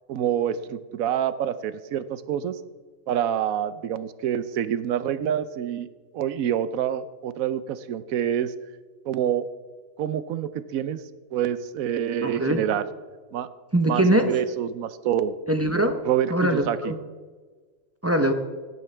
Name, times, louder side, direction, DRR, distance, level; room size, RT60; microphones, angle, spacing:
voice 1, 0.1-2.5 3.1-5.9 6.1-8.5 9.0-9.4 10.0-11.0 11.3-12.8 13.3-13.5 13.8-15.3 16.0-16.9, right 10 dB, 85° right, 13 dB, 1.1 m, -27 dB
voice 2, 12.2-12.6 13.7-14.3 15.5-16.0 16.3-17.0 18.0-18.3, right 1 dB, 15° right, 6 dB, 0.5 m, -22 dB
16.5 x 10.5 x 3.3 m, 1.4 s
omnidirectional pair, 1.4 m